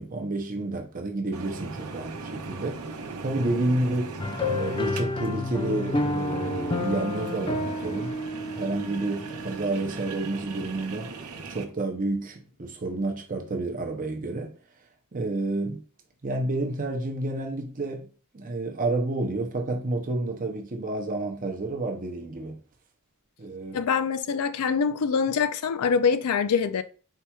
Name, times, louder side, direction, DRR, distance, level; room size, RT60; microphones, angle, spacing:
voice 1, 0.0-2.8 3.2-4.2 4.4-8.2 8.5-11.1 11.5-14.5 15.1-15.8 16.2-18.1 18.3-22.6 23.4-23.8, right 2 dB, 40° right, 0.6 m, -30 dB
sound 1, 1.3-11.6, right 3 dB, 85° right, 0.8 m, -39 dB
sound 2, 4.2-9.8, left 2 dB, 20° left, 0.3 m, -30 dB
voice 2, 23.7-26.8, left 6 dB, 90° left, 0.4 m, -24 dB
4.5 x 4.3 x 2.3 m
head